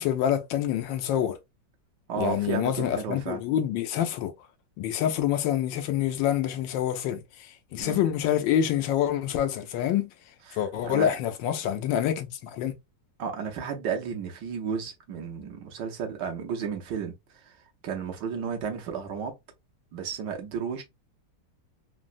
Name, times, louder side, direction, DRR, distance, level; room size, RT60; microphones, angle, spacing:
voice 1, 0.0-1.4 2.2-4.3 4.8-10.1 10.5-12.7, left 10 dB, 85° left, 1.3 m, -27 dB
voice 2, 2.1-3.4 7.8-8.0 10.5-11.1 13.2-17.6 17.8-19.3 19.9-20.8, right 6 dB, 70° right, 1.4 m, -33 dB
3.8 x 2.0 x 2.5 m
omnidirectional pair, 2.0 m